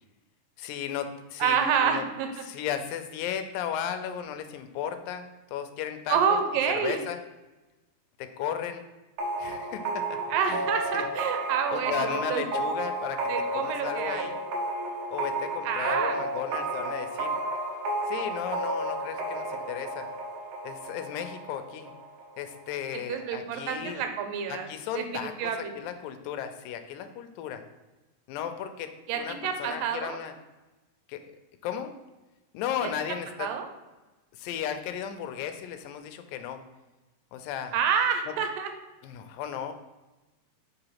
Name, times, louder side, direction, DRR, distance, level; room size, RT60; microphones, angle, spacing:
voice 1, 0.6-2.0 2.4-5.3 5.5-6.4 6.8-7.2 8.2-8.8 9.4-10.2 10.5-10.7 10.9-11.0 11.7-13.3 13.6-14.4 15.1-17.4 18.0-20.1 20.6-21.9 22.4-24.0 24.5-27.6 28.3-30.3 31.1-31.2 31.6-31.9 32.5-33.5 34.3-36.6 37.3-37.7 38.3-38.4 39.0-39.7, left 9 dB, 85° left, 8 dB, 2.3 m, -35 dB
voice 2, 1.4-2.3 6.1-7.0 10.3-12.6 13.3-14.3 15.6-16.2 22.9-24.7 24.9-25.8 29.1-30.2 33.4-33.7 37.7-38.7, right 7 dB, 80° right, 6 dB, 2.3 m, -28 dB
sound 1, 9.2-22.7, right 2 dB, 65° right, 1.7 m, -32 dB
5.2 x 3.9 x 5.7 m, 1.1 s
omnidirectional pair, 4.0 m